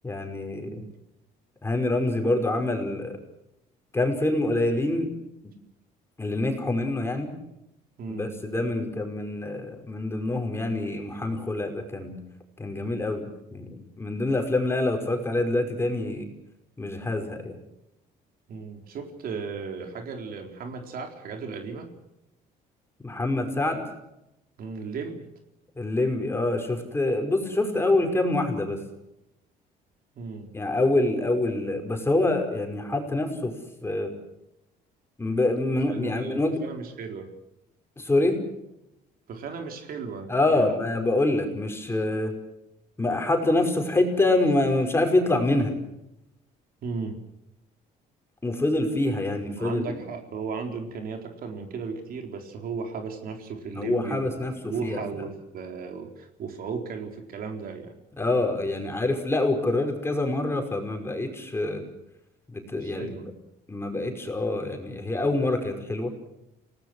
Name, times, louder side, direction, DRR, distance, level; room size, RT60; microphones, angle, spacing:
voice 1, 0.0-0.8 1.6-3.2 3.9-5.1 6.2-7.3 8.1-12.2 12.6-13.7 14.0-16.3 16.8-17.6 23.0-23.9 25.8-28.8 30.5-33.6 33.8-34.1 35.2-36.6 38.0-38.4 40.3-42.3 43.0-45.8 48.4-50.0 53.7-55.0 58.2-61.8 62.5-63.3 63.7-66.1, left 2 dB, 15° left, 4 dB, 5.3 m, -26 dB
voice 2, 0.6-1.0 8.0-8.3 18.5-21.9 24.6-25.3 30.2-30.5 35.9-37.3 39.3-40.7 46.8-47.2 49.6-54.4 54.6-58.0 62.7-63.3, right 5 dB, 60° right, 4 dB, 4.1 m, -35 dB
28.5 x 18.5 x 6.4 m, 0.86 s
cardioid pair, 110°, 17 cm